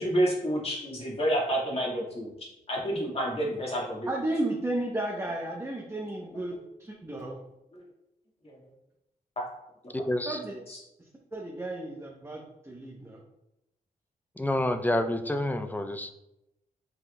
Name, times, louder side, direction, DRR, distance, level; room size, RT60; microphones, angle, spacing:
voice 1, 0.0-2.3 2.7-4.1 6.5-6.6 7.7-7.8 8.4-8.6 9.4-9.5 10.7-10.8, right 1 dB, 40° left, -3 dB, 1.6 m, -29 dB
voice 2, 4.1-6.6 7.0-7.4 10.2-10.6 11.3-13.2, right 1 dB, 15° right, -2 dB, 0.8 m, -33 dB
voice 3, 9.9-10.4 14.4-16.1, left 1 dB, 10° left, 8 dB, 0.4 m, -28 dB
6.0 x 3.6 x 2.2 m, 0.86 s
cardioid pair, 70°, 16 cm